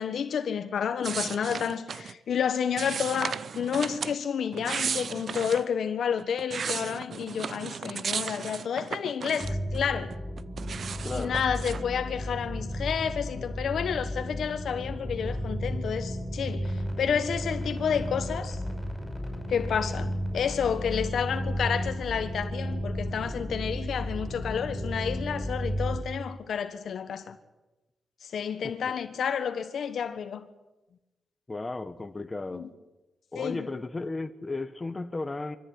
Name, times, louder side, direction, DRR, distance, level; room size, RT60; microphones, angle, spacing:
voice 1, 0.0-10.1 11.1-18.6 19.5-27.4 28.2-30.5 32.5-32.7 33.3-33.7, left 7 dB, 75° left, 1.3 m, -30 dB
sound 1, 1.0-2.1 2.8-4.2 4.5-5.7 6.2-9.8 10.1-11.8, right 6 dB, 55° right, 0.6 m, -35 dB
sound 2, 9.4-26.0, equal, 5° left, 5.8 m, -33 dB
voice 2, 11.0-11.4 28.6-28.7 31.5-32.7 33.3-35.6, left 3 dB, 25° left, 1.3 m, -34 dB
24.0 x 14.0 x 9.6 m
cardioid pair, 100°, 0 cm